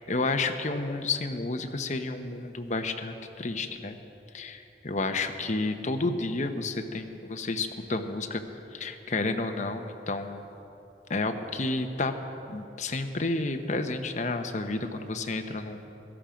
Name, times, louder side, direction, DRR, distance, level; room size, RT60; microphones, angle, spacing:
voice 1, 0.1-4.0 4.3-8.4 8.7-10.5 11.1-12.2 12.5-15.9, left 3 dB, 45° left, 6 dB, 0.9 m, -31 dB
16.0 x 13.5 x 5.1 m, 2.9 s
head